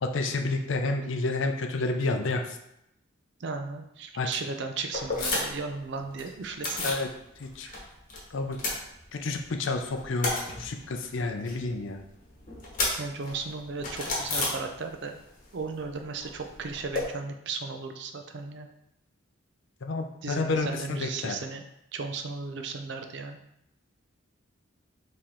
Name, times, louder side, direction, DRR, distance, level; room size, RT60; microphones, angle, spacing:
voice 1, 0.0-2.6 4.2-4.3 6.8-7.1 7.4-7.7 8.3-8.6 9.1-12.0 19.8-21.4, left 3 dB, 65° left, 5 dB, 0.5 m, -30 dB
voice 2, 3.4-6.9 7.6-7.8 13.0-15.2 15.5-18.7 20.2-21.6 21.9-23.4, right 4 dB, 55° right, 5 dB, 0.5 m, -35 dB
sound 1, 4.9-5.7 6.0-7.1 7.4-8.2 8.4-9.5 9.8-15.2 15.4-17.0, left 2 dB, 40° left, 1.1 m, -33 dB
4.3 x 3.2 x 3.7 m, 0.80 s
head